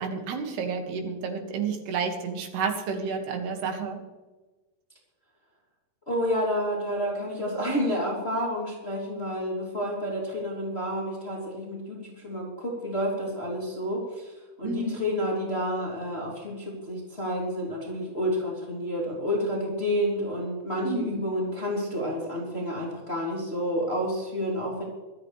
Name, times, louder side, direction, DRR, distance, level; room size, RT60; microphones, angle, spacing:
voice 1, 0.0-4.0 14.6-15.1 20.8-21.3, right 5 dB, 75° right, 3 dB, 4.0 m, -30 dB
voice 2, 6.1-14.3 14.6-24.8, equal, 15° left, -4 dB, 2.9 m, -29 dB
25.5 x 10.5 x 3.3 m, 1.2 s
omnidirectional pair, 4.9 m